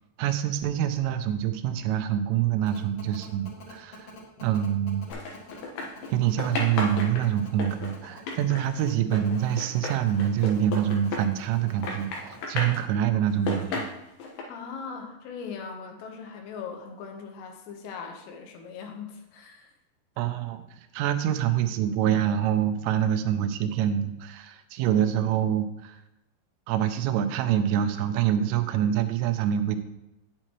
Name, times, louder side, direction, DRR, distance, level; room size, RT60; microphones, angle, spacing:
voice 1, 0.2-4.1 4.4-5.1 6.1-13.8 20.2-26.0 26.7-29.8, right 10 dB, 85° right, 9 dB, 3.1 m, -26 dB
sound 1, 2.7-12.4, left 3 dB, 50° left, 1.9 m, -47 dB
sound 2, 5.1-6.1 6.4-11.6 11.8-12.8 13.3-14.4, left 3 dB, 70° left, 3.1 m, -33 dB
voice 2, 14.5-19.7, left 5 dB, 85° left, 4 dB, 3.7 m, -40 dB
8.8 x 8.7 x 3.0 m, 0.91 s
omnidirectional pair, 5.7 m